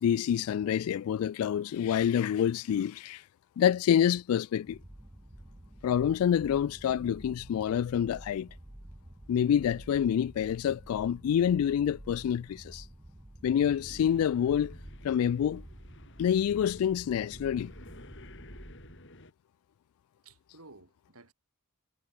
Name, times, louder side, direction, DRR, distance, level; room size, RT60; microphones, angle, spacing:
voice 1, 0.0-3.2 3.6-4.8 5.8-8.5 9.3-12.9 13.4-14.7 15.0-15.6 16.2-17.7, left 9 dB, 85° left, 0.3 m, -27 dB
sound 1, 4.6-19.0, right 1 dB, 15° right, 0.8 m, -50 dB
sound 2, 13.6-19.3, left 1 dB, 60° left, 3.2 m, -53 dB
voice 2, 20.2-21.3, right 3 dB, 85° right, 3.8 m, -54 dB
head